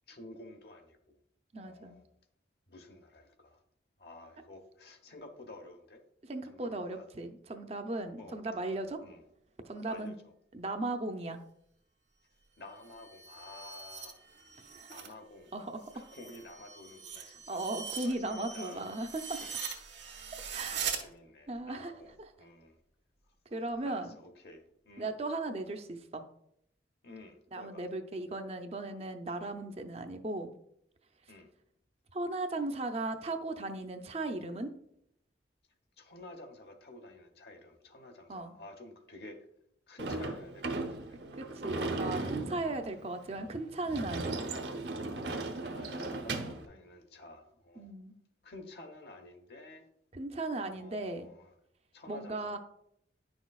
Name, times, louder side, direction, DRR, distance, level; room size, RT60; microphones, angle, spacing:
voice 1, 0.1-1.2 1.5-2.0 2.7-3.6 4.0-6.0 6.4-7.1 8.2-8.4 9.0-9.2 9.9-10.2 12.6-14.2 14.9-15.5 15.9-17.6 18.0-18.9 19.4-19.5 20.7-22.1 22.4-22.8 23.8-25.1 27.0-27.9 31.3-31.5 36.0-39.4 39.9-41.2 45.5-47.9 48.4-49.9 50.8-51.5 51.9-52.6, left 2 dB, 60° left, 1.0 m, -51 dB
voice 2, 1.5-2.0 6.2-9.0 9.6-10.1 10.5-11.4 14.7-14.9 15.5-15.8 17.2-19.4 20.5-20.9 21.5-21.9 23.5-24.1 25.0-26.2 27.5-30.5 32.1-34.7 38.3-38.5 41.4-44.4 47.8-48.1 50.1-51.3 52.1-52.6, right 2 dB, 35° right, 0.5 m, -37 dB
sound 1, 12.7-15.1 15.5-21.0, right 7 dB, 90° right, 1.2 m, -42 dB
Sliding door / Slam, 40.0-46.6, right 2 dB, 70° right, 0.9 m, -37 dB
9.7 x 6.1 x 2.4 m
head